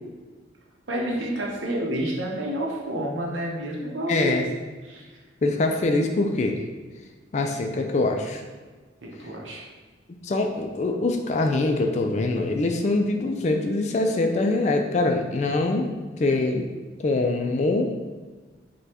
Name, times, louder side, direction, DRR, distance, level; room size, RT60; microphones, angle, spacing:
voice 1, 0.9-4.4 4.8-5.2 9.0-9.7, right 1 dB, 85° right, -2 dB, 0.8 m, -29 dB
voice 2, 4.1-4.4 5.4-6.6 7.3-8.4 10.2-15.9 16.2-16.7 17.0-18.1, left 2 dB, 35° left, 3 dB, 0.3 m, -24 dB
5.0 x 2.3 x 2.9 m, 1.4 s
head